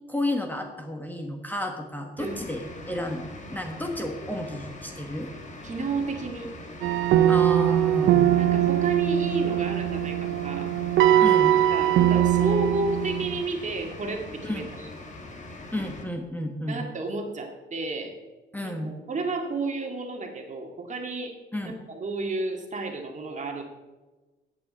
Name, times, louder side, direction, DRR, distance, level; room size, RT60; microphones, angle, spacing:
voice 1, 0.1-3.2 3.5-5.3 7.3-8.3 11.2-11.6 14.4-14.7 15.7-16.8 18.5-19.0 21.5-21.8, left 1 dB, 10° left, 3 dB, 1.4 m, -32 dB
sound 1, 2.2-16.1, left 2 dB, 35° left, 1.7 m, -42 dB
voice 2, 2.2-2.7 5.6-6.5 8.4-10.7 11.7-14.6 16.7-18.2 18.6-21.4 21.6-23.6, right 3 dB, 40° right, 2 dB, 2.0 m, -31 dB
sound 2, 6.8-13.4, right 11 dB, 80° right, 0.7 m, -21 dB
13.0 x 8.7 x 4.1 m, 1.2 s
cardioid pair, 90°, 20 cm